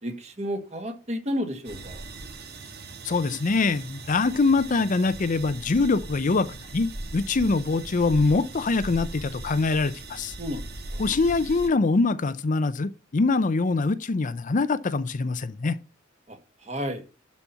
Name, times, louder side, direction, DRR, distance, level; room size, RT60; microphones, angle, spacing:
voice 1, 0.0-2.0 10.4-11.0 16.3-16.4 16.6-17.0, equal, 35° right, 1.8 m, -32 dB
sound 1, 1.6-11.7, right 2 dB, 55° right, 1.7 m, -39 dB
voice 2, 3.0-10.3 11.0-15.8, left 3 dB, 40° left, 0.5 m, -24 dB
11.5 x 4.3 x 5.6 m
head